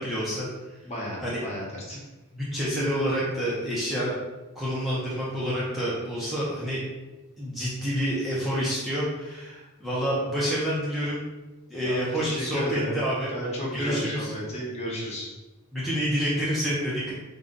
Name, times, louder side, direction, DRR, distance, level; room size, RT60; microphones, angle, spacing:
voice 1, 0.0-0.8 1.2-1.4 2.3-4.1 4.5-6.8 7.4-11.2 11.7-13.3 13.7-14.3 15.7-17.1, equal, ahead, -9 dB, 0.6 m, -28 dB
voice 2, 0.8-2.0 11.8-13.0 13.3-15.3, equal, 30° left, -5 dB, 1.1 m, -33 dB
3.8 x 2.3 x 3.8 m, 1.1 s
head